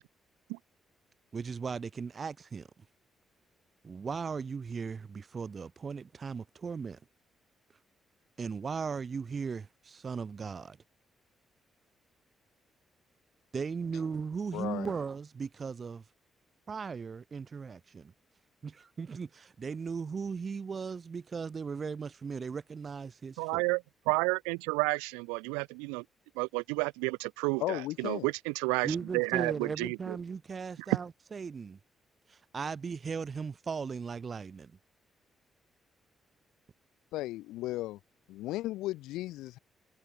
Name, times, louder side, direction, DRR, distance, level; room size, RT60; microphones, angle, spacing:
voice 1, 1.3-2.7 3.8-7.0 8.4-10.8 13.5-16.0 16.7-18.1 18.6-23.6 28.8-31.8 32.3-34.7, right 5 dB, 50° right, 3.5 m, -37 dB
voice 2, 14.5-14.9 27.6-28.3 37.1-38.0 38.3-39.6, left 17 dB, 80° left, 7.3 m, -35 dB
voice 3, 23.4-26.0 26.3-30.2 30.9-31.0, right 33 dB, 90° right, 1.1 m, -31 dB
hypercardioid pair, 50°, 0 cm